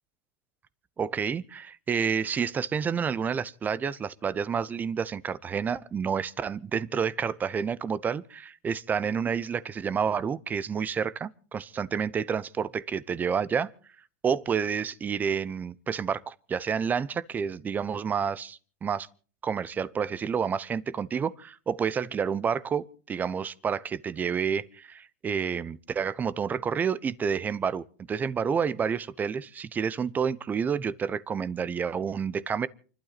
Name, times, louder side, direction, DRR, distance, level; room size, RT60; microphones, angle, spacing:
voice 1, 1.0-13.7 14.2-19.1 19.4-32.7, right 6 dB, 15° right, 0.8 m, -29 dB
28.5 x 12.0 x 4.1 m
supercardioid pair, 145°, 10 cm